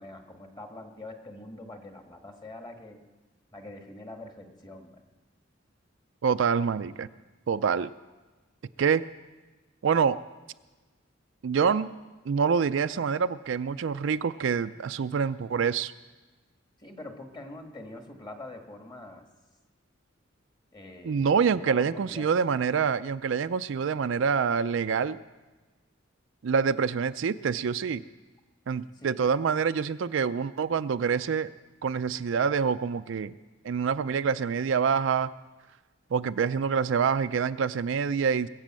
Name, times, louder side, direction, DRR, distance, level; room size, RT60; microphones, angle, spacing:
voice 1, 0.0-3.0 3.5-5.0 16.8-19.2 20.7-22.3 28.9-29.3, left 2 dB, 25° left, 4 dB, 1.6 m, -44 dB
voice 2, 6.2-7.1 7.5-7.9 8.8-9.0 9.8-10.2 11.4-11.9 12.3-15.9 21.0-25.2 26.4-28.0 28.7-31.5 31.8-33.3 33.6-35.3 36.1-38.5, right 6 dB, 70° right, 11 dB, 0.4 m, -26 dB
21.5 x 8.4 x 7.5 m, 1.2 s
head